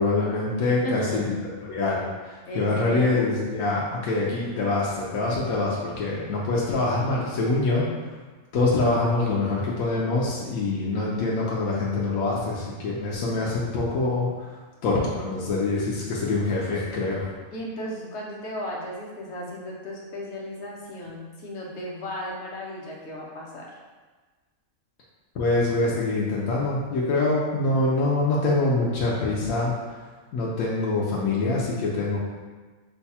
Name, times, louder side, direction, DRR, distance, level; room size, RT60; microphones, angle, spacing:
voice 1, 0.0-1.2 1.6-7.9 8.5-14.6 14.8-17.3 25.3-30.0 30.3-32.2, left 2 dB, 80° left, -5 dB, 1.2 m, -25 dB
voice 2, 0.8-1.3 2.5-3.3 17.5-23.7, left 1 dB, 55° left, -3 dB, 1.1 m, -34 dB
5.6 x 2.3 x 4.1 m, 1.3 s
omnidirectional pair, 1.5 m